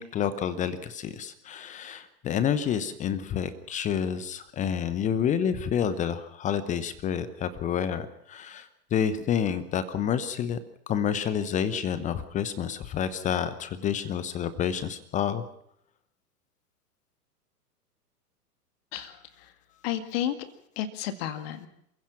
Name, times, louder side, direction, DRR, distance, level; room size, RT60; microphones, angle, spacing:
voice 1, 0.0-10.6 10.9-15.4, left 8 dB, 15° left, 13 dB, 0.9 m, -29 dB
voice 2, 18.9-19.5 19.8-20.5 20.8-21.7, left 11 dB, 40° left, 8 dB, 1.9 m, -32 dB
28.0 x 16.0 x 5.9 m, 0.74 s
figure-of-eight pair, 105°, 47 cm